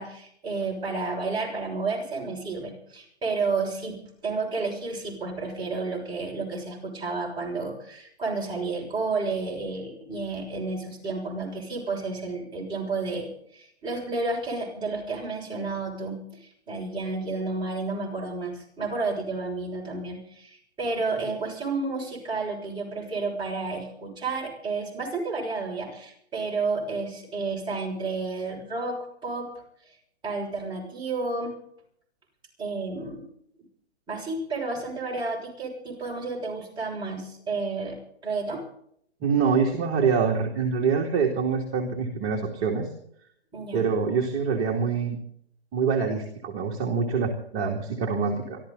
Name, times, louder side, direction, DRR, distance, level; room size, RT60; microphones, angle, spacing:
voice 1, 0.0-29.5 29.8-30.0 30.2-31.5 32.6-33.3 34.1-38.0 38.2-38.6 43.5-43.8, right 3 dB, 15° right, -3 dB, 6.5 m, -31 dB
voice 2, 39.2-42.9 43.7-45.2 45.7-48.6, right 5 dB, 35° right, -1 dB, 2.6 m, -25 dB
24.5 x 14.0 x 4.1 m, 0.67 s
hypercardioid pair, 145°, 33 cm